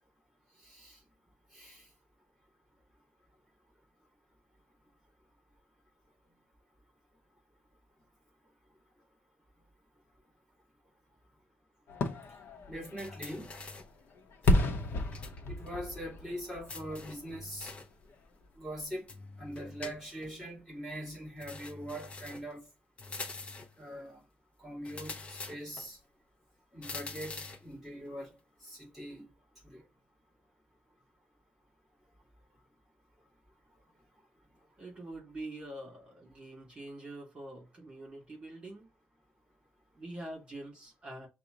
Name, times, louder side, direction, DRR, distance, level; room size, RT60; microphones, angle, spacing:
Fireworks, 11.9-17.7 18.1-18.2, left 1 dB, 70° left, 0.7 m, -33 dB
voice 1, 12.7-13.5 15.5-17.7 18.6-19.0 19.4-22.6 23.8-24.2 24.6-25.2 25.5-26.0 26.7-28.3 28.6-29.3 29.6-29.8, equal, 5° right, 2.3 m, -42 dB
sound 1, 13.0-14.0 14.4-15.4 15.7-15.8 16.7-18.0 19.1-20.3 21.4-22.5 23.0-23.8 24.8-25.9 26.8-27.7, left 3 dB, 30° left, 0.6 m, -45 dB
voice 2, 34.8-38.9 40.0-41.3, right 1 dB, 25° right, 2.2 m, -45 dB
5.7 x 2.1 x 3.7 m
wide cardioid pair, 180°, 4 cm